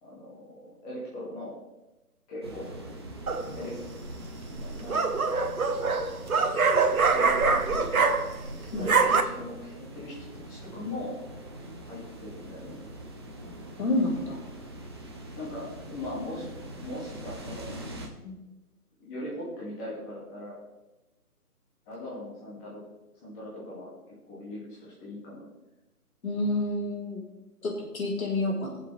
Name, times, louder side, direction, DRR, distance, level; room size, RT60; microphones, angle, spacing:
voice 1, 0.0-1.5 2.3-2.7 3.5-3.7 4.5-5.2 7.1-8.2 8.6-11.2 11.9-12.8 15.4-16.5 16.8-17.7 19.0-20.6 21.9-22.8 23.2-23.9 24.3-25.5, left 1 dB, 15° left, -8 dB, 2.7 m, -39 dB
sound 1, 2.4-18.1, right 1 dB, 15° right, 0.7 m, -43 dB
sound 2, 3.3-3.7 4.6-8.5 8.7-9.2, right 4 dB, 65° right, 1.3 m, -24 dB
voice 2, 13.8-14.4 18.2-18.4 26.2-27.2 27.6-28.8, left 2 dB, 60° left, -3 dB, 4.5 m, -29 dB
21.5 x 7.6 x 3.6 m, 1.0 s
figure-of-eight pair, 150°, 46 cm